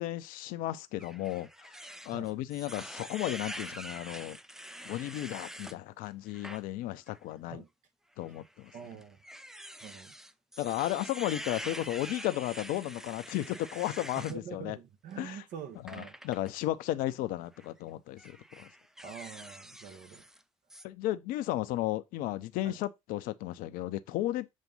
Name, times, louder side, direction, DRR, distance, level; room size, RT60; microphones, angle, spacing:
voice 1, 0.0-1.5 2.0-4.4 4.8-7.6 8.2-8.7 10.6-14.8 15.2-15.4 15.8-18.7 20.8-24.5, left 15 dB, 60° left, 0.7 m, -34 dB
sound 1, 1.0-5.8 6.3-6.6 7.1-7.2 8.2-14.4 15.9-16.5 17.5-17.7 18.2-20.4 20.7-20.8, equal, 5° right, 0.5 m, -45 dB
voice 2, 8.7-9.2 9.8-10.1 14.2-16.2 19.0-20.2 22.6-22.8, right 7 dB, 55° right, 1.4 m, -45 dB
7.3 x 2.6 x 5.5 m
hypercardioid pair, 65°, 16 cm